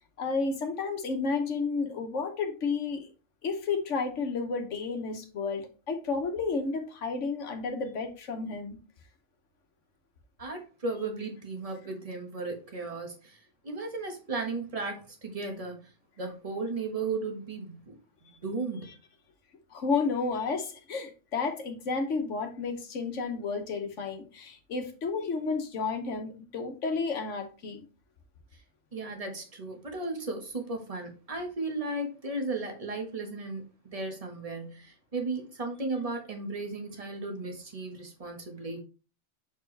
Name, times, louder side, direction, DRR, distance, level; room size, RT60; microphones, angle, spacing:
voice 1, 0.2-3.1 3.4-8.8 19.7-27.8, left 4 dB, 85° left, 1.4 m, -31 dB
voice 2, 10.4-15.9 16.2-18.0 18.4-18.9 28.9-33.6 33.9-38.8, right 3 dB, 30° right, 1.4 m, -35 dB
6.9 x 4.6 x 3.2 m
omnidirectional pair, 1.2 m